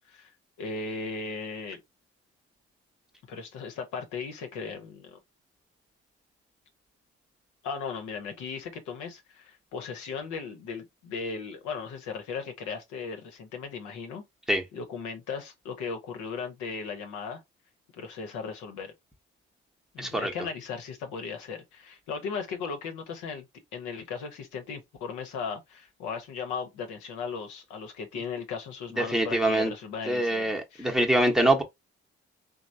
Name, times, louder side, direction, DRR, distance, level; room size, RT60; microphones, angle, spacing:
voice 1, 0.6-1.8 3.3-5.2 7.6-14.2 14.7-17.4 17.9-18.9 19.9-23.5 23.7-30.9, left 5 dB, 80° left, 0.8 m, -37 dB
voice 2, 20.0-20.3 29.0-29.7 30.0-31.6, right 1 dB, ahead, 0.9 m, -24 dB
3.1 x 2.0 x 2.6 m
hypercardioid pair, 50°, 29 cm